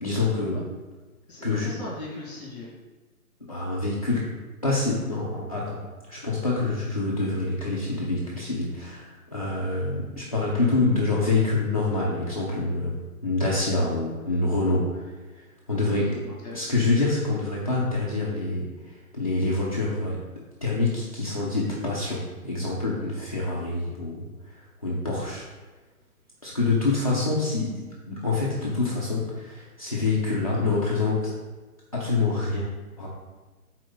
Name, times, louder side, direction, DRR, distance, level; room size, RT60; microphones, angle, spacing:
voice 1, 0.0-0.6 1.4-1.7 3.5-4.3 4.6-13.0 13.2-14.9 15.7-16.2 16.5-20.2 20.6-24.3 24.5-25.4 26.4-31.3 31.9-33.1, left 3 dB, 25° left, -7 dB, 0.5 m, -26 dB
voice 2, 1.3-2.7 15.9-16.6, left 3 dB, 5° right, -13 dB, 0.9 m, -39 dB
5.0 x 4.0 x 5.9 m, 1.3 s
hypercardioid pair, 175°, 44 cm